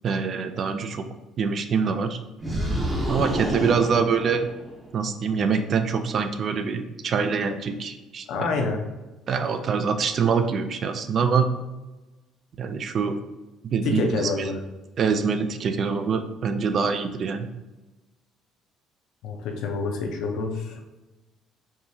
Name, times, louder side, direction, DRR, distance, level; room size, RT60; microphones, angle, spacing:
voice 1, 0.0-1.0 1.4-2.2 3.1-4.5 4.9-8.5 9.3-11.5 12.6-13.2 13.7-14.5 15.0-17.5, right 5 dB, 40° right, 8 dB, 0.4 m, -25 dB
sound 1, 2.4-4.9, right 1 dB, 20° right, 0.7 m, -28 dB
voice 2, 8.3-8.8 13.8-14.6 19.2-20.8, left 3 dB, 70° left, 2 dB, 0.7 m, -27 dB
4.7 x 2.8 x 2.7 m, 1.1 s
cardioid pair, 140°, 0 cm